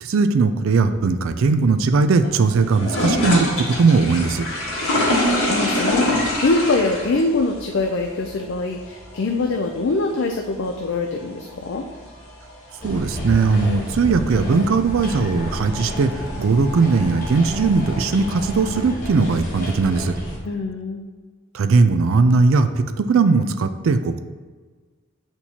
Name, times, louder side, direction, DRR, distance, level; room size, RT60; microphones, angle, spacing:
voice 1, 0.0-4.5 12.8-20.1 21.5-24.2, right 4 dB, 70° right, 9 dB, 0.4 m, -19 dB
sound 1, 0.7-18.9, left 1 dB, 90° left, 1.8 m, -28 dB
voice 2, 5.1-6.1 6.4-11.8 20.4-21.1, left 3 dB, 55° left, 2 dB, 0.4 m, -23 dB
sound 2, 12.8-20.4, equal, 40° left, 1.1 m, -30 dB
8.2 x 4.5 x 2.8 m, 1.4 s
head